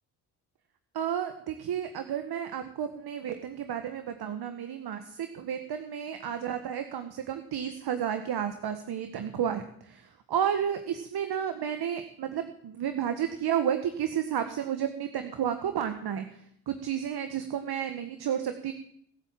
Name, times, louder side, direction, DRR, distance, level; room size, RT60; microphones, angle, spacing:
voice 1, 0.9-16.2 16.7-18.7, right 9 dB, 60° right, 8 dB, 1.6 m, -32 dB
19.5 x 8.5 x 7.5 m, 0.68 s
hypercardioid pair, 40°, 43 cm